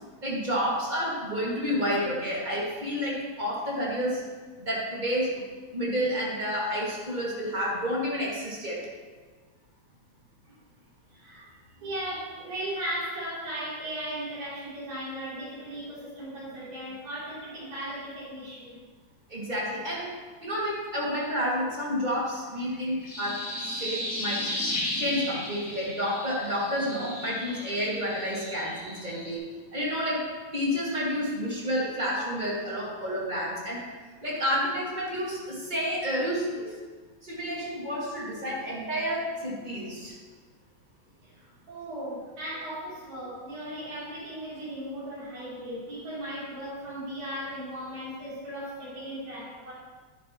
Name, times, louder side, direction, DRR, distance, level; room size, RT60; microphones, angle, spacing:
voice 1, 0.2-4.2 4.6-5.4 5.7-8.8 19.3-20.1 20.4-23.4 23.8-24.5 25.0-29.4 29.7-30.2 30.5-33.8 34.2-36.7 37.2-40.1, equal, 15° right, -5 dB, 2.0 m, -30 dB
voice 2, 11.1-11.5 11.8-18.8 41.2-49.7, right 1 dB, 90° right, -8 dB, 5.0 m, -37 dB
sound 1, 22.7-29.4, left 1 dB, 30° left, 1.9 m, -35 dB
10.5 x 10.0 x 3.1 m, 1.4 s
omnidirectional pair, 3.3 m